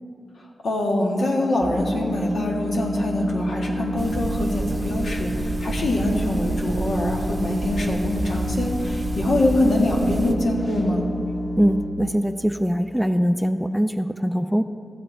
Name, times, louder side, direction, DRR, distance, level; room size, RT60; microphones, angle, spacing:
voice 1, 0.6-11.1, left 1 dB, 75° left, -1 dB, 1.7 m, -24 dB
sound 1, 1.6-11.9, equal, 50° left, 2.2 m, -30 dB
sound 2, 4.0-10.3, right 2 dB, 30° right, 0.8 m, -30 dB
voice 2, 11.6-14.6, equal, ahead, 10 dB, 0.4 m, -22 dB
13.5 x 7.9 x 4.5 m, 2.4 s
cardioid pair, 60°, 0 cm